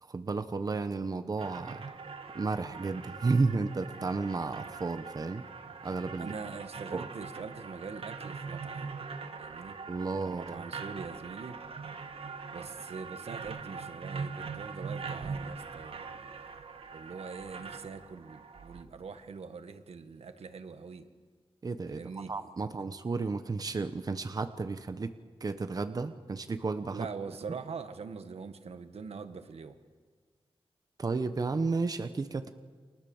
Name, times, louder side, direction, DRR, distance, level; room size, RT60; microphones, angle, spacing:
voice 1, 0.0-1.8 2.3-5.5 5.8-6.3 6.9-7.1 9.9-10.6 21.6-27.1 31.0-32.5, right 3 dB, 40° right, 9 dB, 1.0 m, -32 dB
sound 1, 1.4-18.8, right 5 dB, 65° right, 1.6 m, -42 dB
voice 2, 6.1-9.0 9.4-9.8 10.2-11.6 12.5-16.3 16.9-21.1 21.9-22.3 22.6-22.7 26.9-29.8, right 5 dB, 85° right, 9 dB, 1.6 m, -43 dB
30.0 x 25.5 x 7.2 m, 1.5 s
wide cardioid pair, 155°, 10 cm